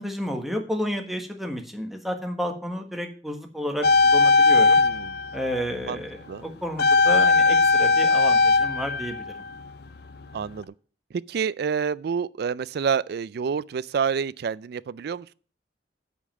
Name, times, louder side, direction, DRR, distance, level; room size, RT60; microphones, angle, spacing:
voice 1, 0.0-4.8 5.3-9.3, equal, ahead, 1.4 m, -31 dB
sound 1, 3.8-5.9 6.8-9.9 10.2-10.3, left 4 dB, 65° left, 0.6 m, -19 dB
voice 2, 4.6-5.2 5.8-6.0 6.3-6.5 10.3-10.7 11.1-15.3, right 6 dB, 65° right, 0.4 m, -28 dB
8.4 x 5.3 x 7.5 m
head